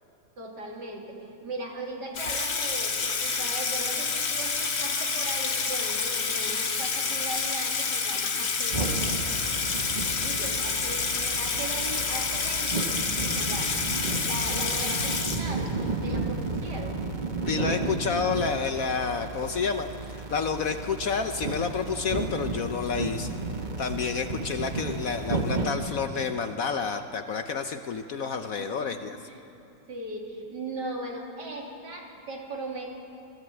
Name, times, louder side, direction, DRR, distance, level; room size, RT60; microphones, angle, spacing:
voice 1, 0.4-9.2 10.2-13.8 14.2-15.7 16.0-17.0 28.6-29.4 29.9-32.9, right 2 dB, 65° right, -1 dB, 3.5 m, -38 dB
Water tap faucet / Sink (filling or washing), 2.2-15.9, left 5 dB, 75° left, 2.4 m, -28 dB
sound 1, 8.7-25.7, right 3 dB, 25° right, 1.4 m, -33 dB
voice 2, 17.5-19.9 20.3-23.3 23.8-29.2, left 5 dB, 60° left, 7 dB, 1.1 m, -29 dB
25.5 x 16.5 x 8.7 m, 2.8 s
omnidirectional pair, 2.0 m